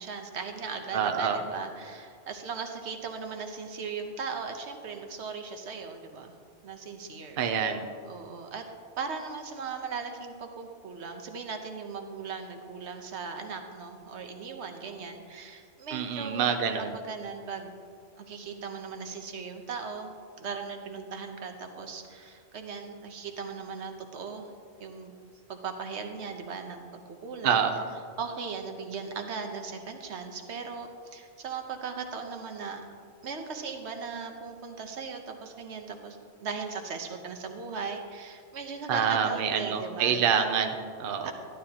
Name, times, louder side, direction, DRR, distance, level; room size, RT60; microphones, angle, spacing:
voice 1, 0.0-6.3 6.6-7.4 8.0-8.7 9.0-17.7 18.2-24.5 24.8-25.1 25.5-27.6 28.2-32.9 33.2-40.2 41.2-41.3, right 5 dB, 80° right, 5 dB, 1.2 m, -38 dB
voice 2, 0.9-1.4 7.4-7.8 15.9-16.9 27.4-27.8 38.9-41.3, right 7 dB, 60° right, 6 dB, 0.8 m, -27 dB
12.0 x 11.5 x 2.8 m, 2.2 s
omnidirectional pair, 1.1 m